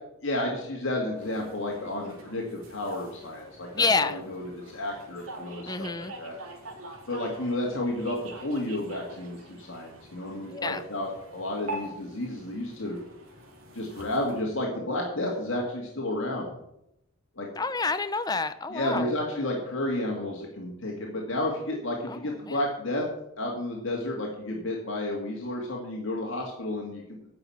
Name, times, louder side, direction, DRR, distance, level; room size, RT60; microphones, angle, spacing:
voice 1, 0.2-5.7 6.2-6.4 7.1-13.0 13.7-16.6 17.4-17.5 18.7-23.1 23.4-27.0, left 1 dB, 60° left, -1 dB, 2.1 m, -31 dB
sound 1, 1.1-14.4, right 1 dB, 75° right, 2.6 m, -45 dB
voice 2, 3.7-4.2 5.7-6.1 10.5-10.8 17.6-19.2 22.1-22.6, left 4 dB, 20° left, 12 dB, 0.6 m, -28 dB
10.5 x 6.0 x 8.5 m, 0.81 s
head